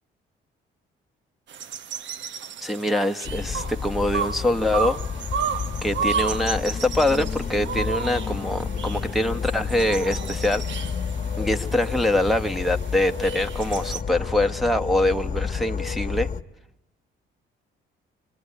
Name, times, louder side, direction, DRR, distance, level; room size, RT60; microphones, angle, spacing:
sound 1, 1.5-14.0, right 7 dB, 70° right, 1.1 m, -33 dB
voice 1, 2.6-5.0 5.8-10.6 11.4-16.3, left 1 dB, ahead, 4 dB, 1.1 m, -24 dB
Insect / Frog, 3.2-16.4, left 6 dB, 40° left, 1.1 m, -30 dB
25.5 x 23.0 x 9.9 m, 0.87 s
cardioid pair, 90°, 20 cm